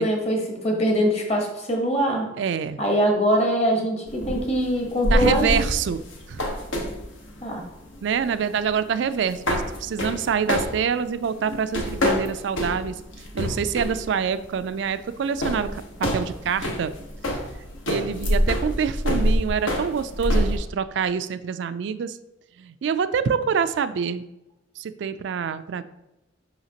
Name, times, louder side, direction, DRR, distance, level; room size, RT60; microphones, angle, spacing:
voice 1, 0.0-2.3 2.8-5.6 7.4-7.6, equal, 35° left, 1 dB, 1.1 m, -23 dB
voice 2, 2.4-2.8 5.1-6.0 6.3-6.4 8.0-13.0 13.3-16.9 17.9-22.2 22.6-24.3 24.8-25.8, right 7 dB, 65° right, 13 dB, 0.3 m, -26 dB
sound 1, 4.1-20.6, equal, 80° left, 1.0 m, -27 dB
5.8 x 5.7 x 2.9 m, 0.93 s
head